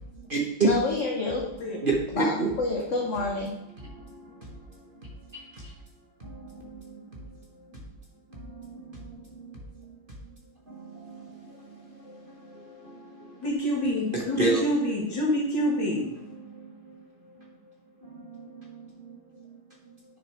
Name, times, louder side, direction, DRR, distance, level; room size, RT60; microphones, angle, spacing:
voice 1, 0.6-1.5 2.1-3.5, left 3 dB, 45° left, -1 dB, 1.3 m, -27 dB
voice 2, 1.8-2.5 3.9-5.7 6.2-7.3 8.3-9.6 10.7-13.4 14.1-14.6 16.4-17.0 18.0-19.2, right 3 dB, 30° right, -2 dB, 1.5 m, -34 dB
voice 3, 13.4-16.1, equal, 65° left, -2 dB, 2.8 m, -27 dB
9.6 x 6.5 x 3.6 m, 0.84 s
omnidirectional pair, 2.1 m